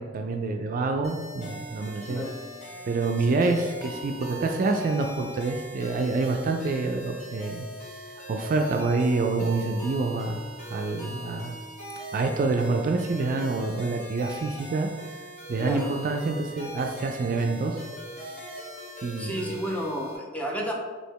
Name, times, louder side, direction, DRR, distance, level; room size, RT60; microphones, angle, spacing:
voice 1, 0.0-2.2 2.9-8.0 8.3-10.4 10.7-11.6 12.1-14.9 15.5-17.8 19.0-19.5, right 3 dB, 45° right, 4 dB, 0.3 m, -27 dB
sound 1, 1.0-20.2, right 1 dB, 35° left, 1.3 m, -41 dB
voice 2, 3.3-3.7 15.6-15.9 19.2-20.7, equal, 5° left, -1 dB, 0.5 m, -32 dB
3.2 x 2.8 x 4.5 m, 1.4 s
head